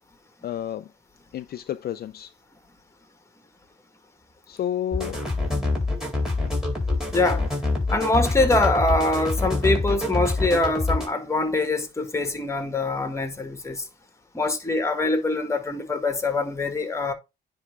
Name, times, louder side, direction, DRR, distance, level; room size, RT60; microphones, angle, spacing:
voice 1, 0.4-0.9 1.3-2.3 4.5-5.2 14.5-14.6, left 11 dB, 55° left, 0.4 m, -30 dB
sound 1, 4.9-11.1, left 2 dB, ahead, 3.7 m, -25 dB
voice 2, 7.1-7.4 7.9-13.8 14.3-17.1, left 2 dB, 15° left, 1.7 m, -24 dB
9.8 x 3.5 x 3.4 m
cardioid pair, 90°, 20 cm